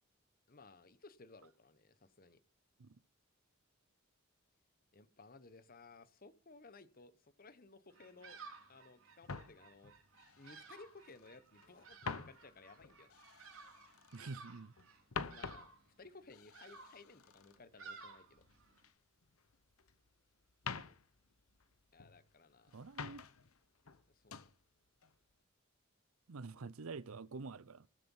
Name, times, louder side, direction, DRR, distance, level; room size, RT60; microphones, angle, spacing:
voice 1, 0.5-2.4 4.9-8.4 8.7-9.9 10.4-13.1 15.3-18.4 21.9-22.8 24.1-24.4, left 3 dB, 45° left, 1.0 m, -59 dB
Bird vocalization bird call bird song, 7.9-18.9, right 4 dB, 70° right, 3.9 m, -57 dB
sound 1, 9.2-11.3 11.6-14.4 14.7-18.9 19.2-20.1 20.5-22.3 22.7-23.6 23.8-24.5 25.0-25.3, left 5 dB, 90° left, 0.9 m, -48 dB
voice 2, 14.1-14.7 22.7-23.2 26.3-27.9, right 4 dB, 85° right, 0.7 m, -47 dB
19.0 x 7.7 x 5.6 m
head